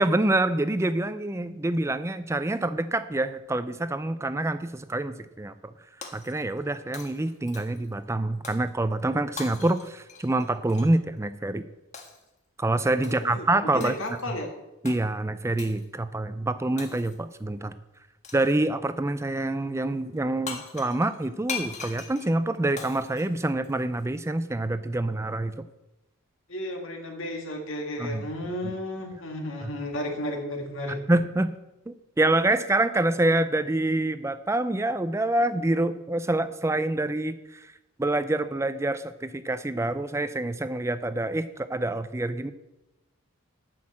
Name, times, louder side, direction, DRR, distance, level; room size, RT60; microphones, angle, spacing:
voice 1, 0.0-5.7 6.1-11.7 12.6-13.9 14.3-14.4 14.8-17.7 18.3-25.5 28.0-28.2 28.6-28.7 29.6-29.7 31.1-31.5 31.9-37.7 38.0-42.5, right 2 dB, 15° right, 13 dB, 0.4 m, -26 dB
Shatter, 6.0-6.7 6.9-7.9 8.4-8.7 9.4-10.9 11.9-12.3 13.0-13.4 13.8-14.3 14.8-15.0 15.6-15.9 16.8-17.3 18.2-18.6 20.2-20.3 20.5-24.0, left 5 dB, 35° left, 1.4 m, -40 dB
voice 2, 13.0-14.5 26.5-31.0, left 1 dB, 60° left, 3 dB, 1.8 m, -33 dB
9.6 x 6.3 x 7.5 m, 0.97 s
head